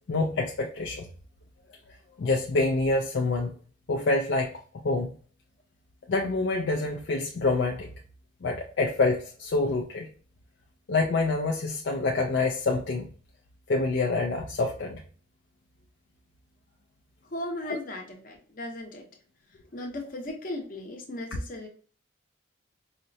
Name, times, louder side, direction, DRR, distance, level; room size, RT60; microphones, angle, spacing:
voice 1, 0.1-1.1 1.9-3.5 3.9-5.1 6.1-7.9 8.4-10.1 10.9-13.1 13.7-15.0, left 3 dB, 60° left, 0 dB, 0.4 m, -27 dB
voice 2, 17.3-19.1 19.7-21.7, left 1 dB, 40° left, 1 dB, 0.8 m, -37 dB
4.8 x 2.0 x 2.6 m, 0.43 s
head